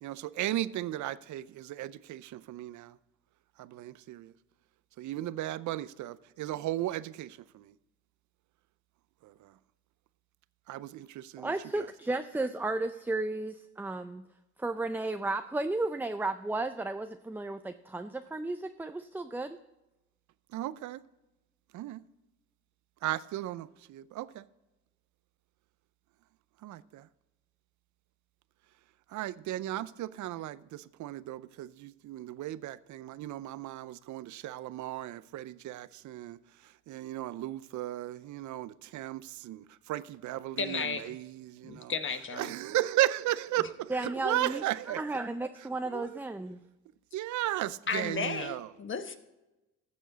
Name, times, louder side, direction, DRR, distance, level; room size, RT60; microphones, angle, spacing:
voice 1, 0.0-2.9 3.6-4.3 5.0-7.7 9.2-9.5 10.7-11.5 20.5-21.0 21.7-22.0 23.0-24.5 26.6-27.1 29.1-36.4 36.9-41.9 42.4-45.0 45.9-46.2 47.1-48.7, right 14 dB, 75° right, 0.5 m, -35 dB
voice 2, 11.4-14.3 14.6-19.6 43.9-46.6, right 2 dB, 5° right, 0.4 m, -34 dB
voice 3, 40.6-41.1 41.6-42.5 47.9-49.2, left 5 dB, 40° left, 1.2 m, -34 dB
15.0 x 7.1 x 4.0 m
cardioid pair, 90°, 30 cm